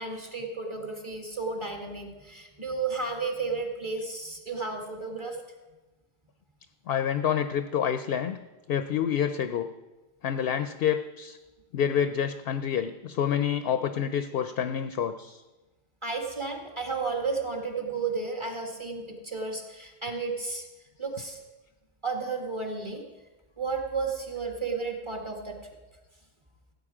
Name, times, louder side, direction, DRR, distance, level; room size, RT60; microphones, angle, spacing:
voice 1, 0.0-5.4 13.9-14.0 16.0-20.6 21.0-21.4 22.0-23.0 23.6-25.6, right 4 dB, 25° right, 1 dB, 1.7 m, -33 dB
voice 2, 6.9-8.4 8.7-9.7 10.2-11.4 11.7-15.4, left 8 dB, 65° left, 9 dB, 0.8 m, -28 dB
15.5 x 8.2 x 4.9 m, 1.1 s
omnidirectional pair, 1.1 m